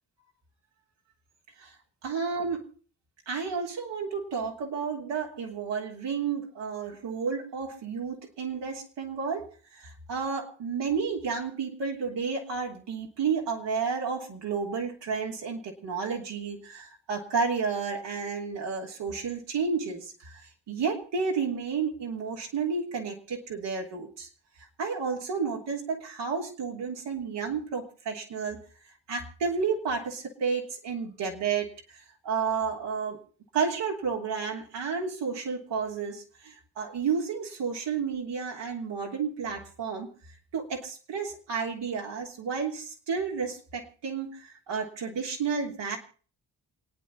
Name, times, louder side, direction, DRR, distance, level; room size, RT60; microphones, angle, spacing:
voice 1, 2.0-2.7 3.3-20.4 20.7-24.3 24.8-28.6 29.1-33.2 33.5-40.1 40.5-46.0, right 5 dB, 90° right, 0 dB, 3.2 m, -31 dB
28.0 x 9.7 x 4.2 m, 0.41 s
supercardioid pair, 50°, 41 cm